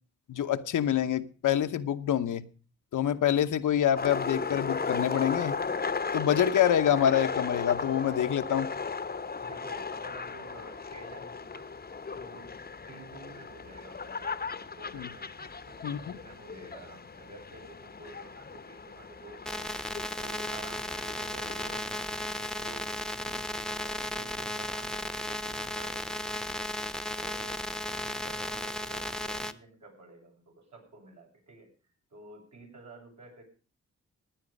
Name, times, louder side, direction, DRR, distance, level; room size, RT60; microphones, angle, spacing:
voice 1, 0.3-2.5 2.9-5.6 6.1-8.7 14.9-15.1 15.8-16.2, left 10 dB, 85° left, 0.9 m, -26 dB
sound 1, 4.0-21.8, left 5 dB, 30° left, 0.8 m, -36 dB
voice 2, 9.4-11.7 12.1-12.6 12.9-19.7 20.2-26.8 27.1-27.6 27.9-31.7 32.1-33.4, right 2 dB, 65° right, 7.2 m, -51 dB
sound 2, 19.5-29.5, left 1 dB, ahead, 0.9 m, -35 dB
16.0 x 9.9 x 5.3 m
cardioid pair, 70°, 30 cm